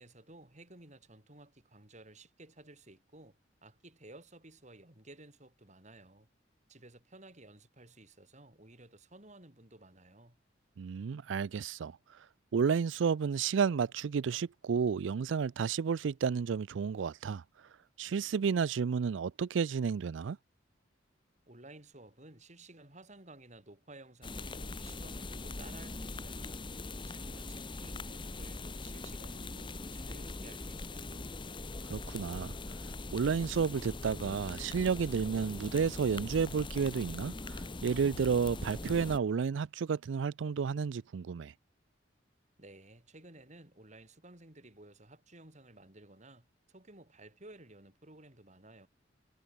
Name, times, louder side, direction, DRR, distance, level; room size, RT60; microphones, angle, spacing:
voice 1, 0.0-6.3 6.7-10.4 21.5-26.6 27.1-31.3 42.6-48.9, right 2 dB, 40° right, 5.1 m, -55 dB
voice 2, 10.8-12.0 12.5-17.4 18.0-20.4 31.9-32.5 33.1-41.5, right 6 dB, 85° right, 0.4 m, -31 dB
sound 1, 24.2-39.2, left 2 dB, 25° left, 1.1 m, -42 dB
head